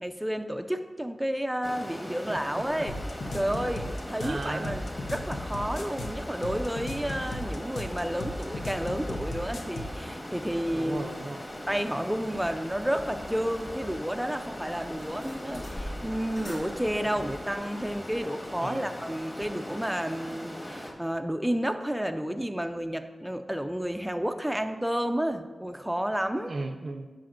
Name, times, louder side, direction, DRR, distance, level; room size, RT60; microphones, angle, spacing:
voice 1, 0.0-2.9 3.3-3.8 4.1-11.0 11.7-26.5, equal, 5° right, 6 dB, 0.4 m, -31 dB
Stream, 1.6-20.9, left 1 dB, 20° left, 1.4 m, -40 dB
voice 2, 2.3-2.9 3.3-3.8 4.2-4.7 10.6-11.5 17.1-17.3 18.6-19.0 26.4-27.1, right 2 dB, 60° right, 6 dB, 0.5 m, -37 dB
sound 1, 2.9-10.0, left 1 dB, 85° left, 0.7 m, -36 dB
sound 2, 10.2-17.9, equal, 50° left, 1.1 m, -46 dB
10.0 x 6.1 x 2.5 m, 1.3 s
cardioid pair, 50°, 0 cm